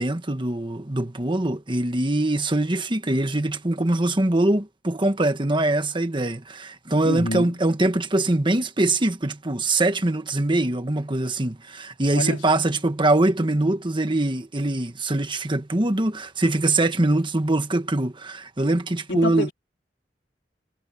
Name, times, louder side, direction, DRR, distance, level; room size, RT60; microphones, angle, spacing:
voice 1, 0.0-19.5, right 2 dB, 25° right, 1.4 m, -23 dB
voice 2, 7.0-7.6 12.2-12.4 19.1-19.5, left 1 dB, 80° left, 3.9 m, -27 dB
head